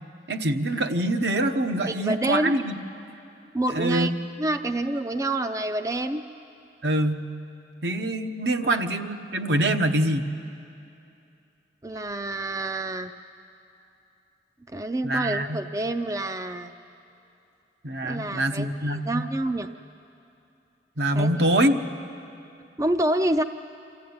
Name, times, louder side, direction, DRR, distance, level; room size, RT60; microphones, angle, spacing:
voice 1, 0.3-2.7 3.7-4.1 6.8-7.3 7.8-10.3 15.0-15.6 17.8-19.3 21.0-21.8, right 1 dB, 65° right, 6 dB, 1.1 m, -24 dB
voice 2, 1.9-2.5 3.5-4.1 4.4-6.3 8.6-8.8 11.8-13.1 14.7-16.7 18.0-19.7 21.1-21.3 22.8-23.4, right 1 dB, 20° right, 9 dB, 0.4 m, -27 dB
26.0 x 14.5 x 9.5 m, 2.7 s
head